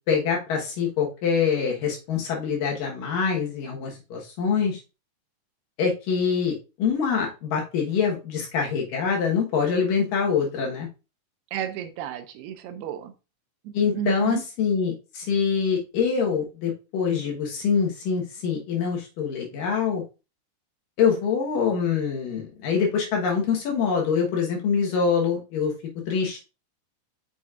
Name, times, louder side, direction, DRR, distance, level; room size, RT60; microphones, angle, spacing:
voice 1, 0.1-4.8 5.8-10.9 13.7-20.0 21.0-25.7 26.1-26.4, left 6 dB, 65° left, 0 dB, 2.6 m, -25 dB
voice 2, 11.5-13.1 13.6-14.4, right 10 dB, 85° right, 8 dB, 2.7 m, -32 dB
7.0 x 6.3 x 2.4 m, 0.29 s
omnidirectional pair, 4.6 m